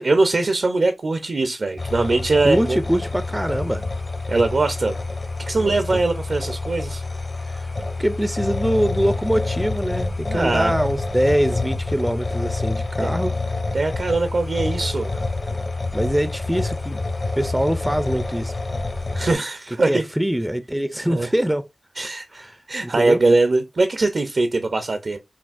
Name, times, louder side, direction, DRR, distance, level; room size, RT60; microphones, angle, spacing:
voice 1, 0.0-2.8 4.3-4.9 5.5-7.0 10.3-10.7 13.0-13.1 13.7-15.2 19.1-20.0 21.1-21.3 22.0-25.2, right 3 dB, 65° right, 0.5 m, -21 dB
sound 1, 1.8-19.3, left 3 dB, 50° left, 0.8 m, -27 dB
voice 2, 2.4-3.8 5.6-6.0 7.5-7.7 8.0-13.4 15.9-17.1 17.4-18.6 19.9-21.7 22.3-23.2, equal, 10° right, 0.4 m, -23 dB
5.7 x 2.4 x 2.5 m
wide cardioid pair, 80°, 0 cm